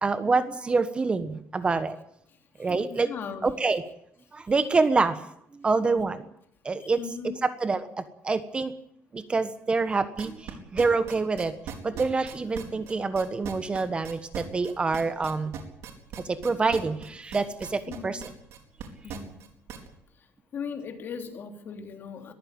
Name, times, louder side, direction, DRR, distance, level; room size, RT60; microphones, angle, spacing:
voice 1, 0.0-2.0 2.6-3.1 3.4-3.8 4.3-5.2 5.5-6.2 6.6-8.7 9.1-11.6 11.8-15.6 16.2-18.2, right 4 dB, 20° right, 12 dB, 1.3 m, -26 dB
voice 2, 2.6-3.6 6.8-7.5 17.9-18.3 19.0-19.3 20.5-22.3, left 6 dB, 45° left, 6 dB, 3.2 m, -38 dB
sound 1, 10.2-19.9, right 8 dB, 65° right, 4.6 m, -39 dB
22.5 x 15.0 x 8.8 m, 0.73 s
cardioid pair, 140°, 5 cm